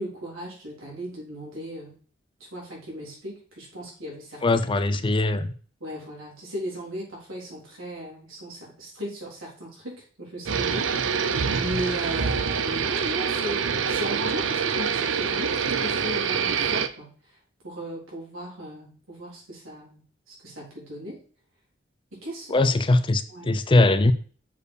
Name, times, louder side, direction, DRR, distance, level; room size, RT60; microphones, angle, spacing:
voice 1, 0.0-2.0 2.5-4.6 5.8-17.1 17.6-21.2 22.1-22.6 23.3-23.6, equal, 90° right, -3 dB, 3.8 m, -36 dB
voice 2, 4.4-5.5 22.5-24.1, left 2 dB, 25° left, 12 dB, 0.5 m, -21 dB
sound 1, 10.5-16.9, right 6 dB, 70° right, 0.6 m, -26 dB
7.0 x 4.6 x 4.9 m, 0.42 s
head